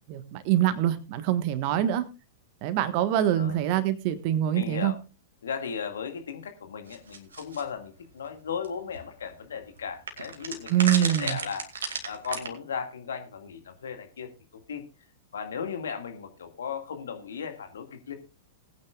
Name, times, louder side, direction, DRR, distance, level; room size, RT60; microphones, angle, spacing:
voice 1, 0.1-2.0 2.6-4.9 10.7-11.4, right 11 dB, 45° right, 12 dB, 1.4 m, -25 dB
voice 2, 4.5-5.0 5.4-11.7 12.1-14.8 15.3-18.2, left 6 dB, 70° left, 6 dB, 2.1 m, -36 dB
sound 1, 6.9-7.6 8.6-8.7 8.9-9.0 10.1-12.5, right 5 dB, 75° right, 2.2 m, -32 dB
20.0 x 9.5 x 2.4 m, 0.30 s
figure-of-eight pair, 100°, 0 cm